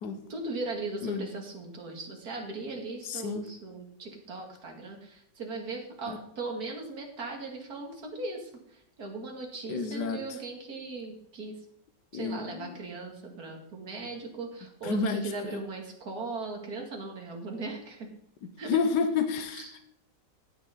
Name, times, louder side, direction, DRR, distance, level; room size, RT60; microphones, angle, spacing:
voice 1, 0.3-11.6 12.1-18.1 18.6-18.8 19.5-19.8, right 3 dB, 60° right, 1 dB, 2.7 m, -38 dB
voice 2, 3.0-3.5 6.1-6.2 9.7-10.2 12.1-12.8 14.8-15.6 18.4-19.6, left 5 dB, 80° left, 7 dB, 1.5 m, -30 dB
16.5 x 6.8 x 3.9 m, 0.76 s
omnidirectional pair, 1.8 m